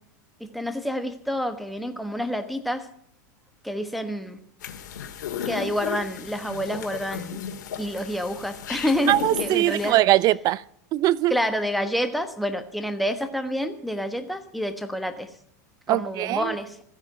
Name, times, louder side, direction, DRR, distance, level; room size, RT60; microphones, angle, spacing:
voice 1, 0.4-2.9 3.6-4.4 5.4-7.4 7.8-10.0 11.3-15.3 15.9-16.8, equal, ahead, 1.3 m, -28 dB
sound 1, 4.6-9.9, left 8 dB, 80° left, 2.1 m, -34 dB
voice 2, 9.1-10.6 10.9-11.3 15.9-16.5, right 15 dB, 45° right, 0.5 m, -21 dB
14.5 x 9.5 x 8.0 m
hypercardioid pair, 115°, 10 cm